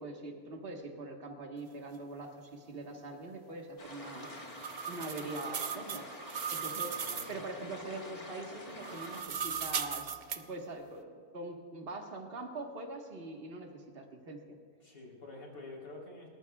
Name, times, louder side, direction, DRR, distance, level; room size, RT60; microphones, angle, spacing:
voice 1, 0.0-4.3 4.9-6.1 6.5-14.6, right 2 dB, 40° right, 2 dB, 1.6 m, -43 dB
sound 1, 3.8-9.2, left 2 dB, 25° left, 1.4 m, -47 dB
sound 2, 4.0-7.4 8.7-10.4, right 7 dB, 55° right, 0.5 m, -38 dB
voice 2, 6.7-7.3 14.8-16.3, left 2 dB, 65° left, -3 dB, 4.2 m, -48 dB
30.0 x 14.0 x 2.3 m, 2.3 s
omnidirectional pair, 1.6 m